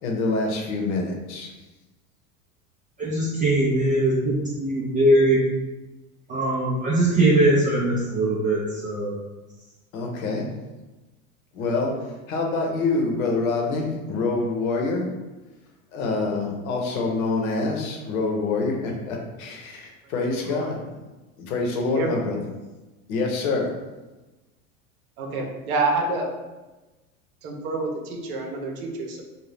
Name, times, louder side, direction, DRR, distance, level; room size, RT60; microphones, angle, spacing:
voice 1, 0.0-1.5 9.9-10.5 11.5-11.9 12.3-15.1 15.9-20.8 21.5-22.4 23.1-23.7, left 3 dB, 70° left, 1 dB, 0.9 m, -26 dB
voice 2, 3.0-5.4 6.3-9.1, right 1 dB, 20° right, -6 dB, 0.4 m, -21 dB
voice 3, 21.8-22.3 25.2-26.3 27.4-29.2, right 3 dB, 75° right, 2 dB, 0.8 m, -28 dB
2.7 x 2.3 x 3.3 m, 1.1 s
hypercardioid pair, 95°, 44 cm